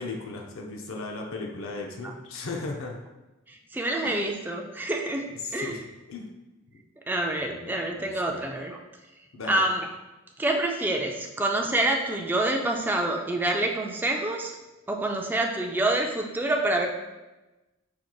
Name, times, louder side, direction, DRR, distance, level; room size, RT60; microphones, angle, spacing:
voice 1, 0.0-3.0 4.0-4.2 5.4-5.8 6.1-6.3 6.7-6.8 7.4-8.4 9.3-9.6, left 3 dB, 65° left, 1 dB, 0.6 m, -36 dB
voice 2, 3.5-5.3 5.5-5.8 7.1-8.8 9.5-9.9 10.4-14.5 14.9-16.9, right 1 dB, 10° right, 2 dB, 0.3 m, -27 dB
4.5 x 3.8 x 2.3 m, 1.1 s
head